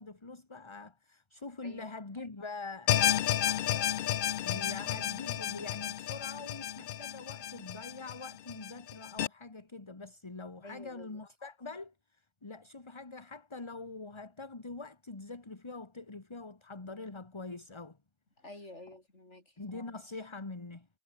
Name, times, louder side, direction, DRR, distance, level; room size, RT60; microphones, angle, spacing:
voice 1, 0.0-4.0 4.4-18.0 19.6-20.9, left 3 dB, 25° left, 1.5 m, -44 dB
sound 1, 2.9-9.3, left 11 dB, 60° left, 0.6 m, -32 dB
voice 2, 10.6-11.2 18.4-19.6, left 1 dB, 75° left, 6.4 m, -50 dB
omnidirectional pair, 1.2 m